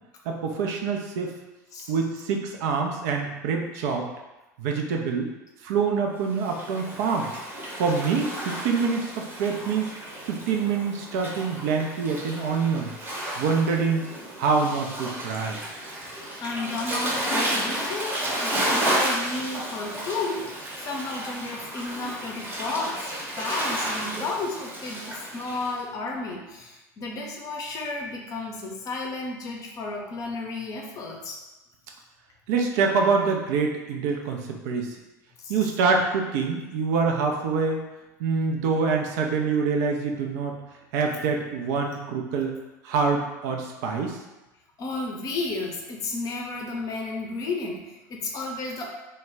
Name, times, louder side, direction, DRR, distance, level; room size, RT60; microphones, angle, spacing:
voice 1, 0.3-1.4 1.9-4.1 4.6-5.3 5.6-7.3 7.7-9.9 10.2-12.9 13.4-14.1 14.4-15.6 32.5-34.9 35.5-37.8 38.2-40.5 40.9-42.5 42.8-44.2, right 5 dB, 60° right, 2 dB, 0.4 m, -25 dB
Waves surf, 6.3-25.7, right 1 dB, 20° right, 0.8 m, -32 dB
voice 2, 16.4-31.4 35.4-35.5 44.8-48.9, left 3 dB, 40° left, 0 dB, 0.6 m, -33 dB
2.2 x 2.1 x 3.3 m, 1.0 s
figure-of-eight pair, 70°, 9 cm